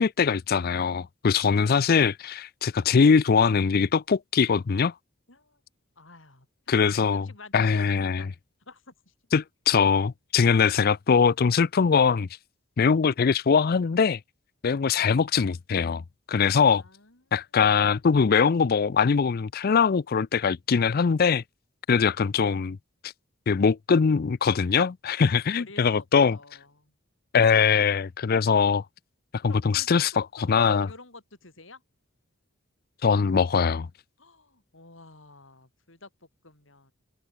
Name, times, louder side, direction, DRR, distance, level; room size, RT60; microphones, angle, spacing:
voice 1, 0.0-4.9 6.7-7.3 7.5-8.2 9.3-12.3 12.8-14.2 14.6-16.0 16.3-16.8 17.3-21.4 21.9-22.8 23.5-26.4 27.3-28.8 29.4-30.1 30.5-30.9 33.0-33.9, left 6 dB, 45° left, 0.4 m, -22 dB
voice 2, 5.3-5.6 6.0-7.9 8.2-8.3 8.7-9.1 16.7-17.2 25.6-26.9 29.5-31.8 34.2-36.9, left 3 dB, 65° left, 4.8 m, -49 dB
head